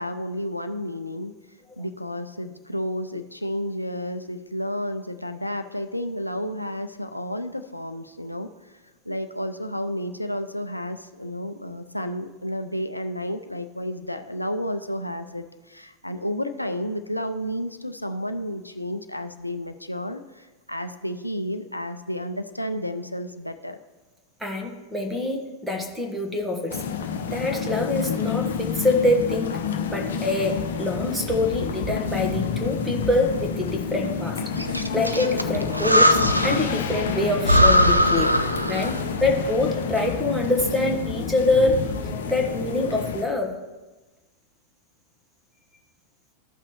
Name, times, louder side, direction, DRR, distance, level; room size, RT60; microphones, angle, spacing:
voice 1, 0.0-1.3 1.8-8.5 9.1-23.8 38.4-39.0, equal, 85° left, 8 dB, 0.4 m, -31 dB
voice 2, 24.4-26.8 27.3-29.6 29.9-41.8 42.3-43.5, left 2 dB, 5° right, 2 dB, 1.3 m, -25 dB
sound 1, 26.7-43.2, left 6 dB, 65° left, 0.7 m, -29 dB
Breathing, 34.6-36.8 37.1-37.2 37.4-39.1, equal, 90° right, 0.4 m, -20 dB
14.0 x 5.8 x 3.0 m, 1.2 s
figure-of-eight pair, 90°, 0 cm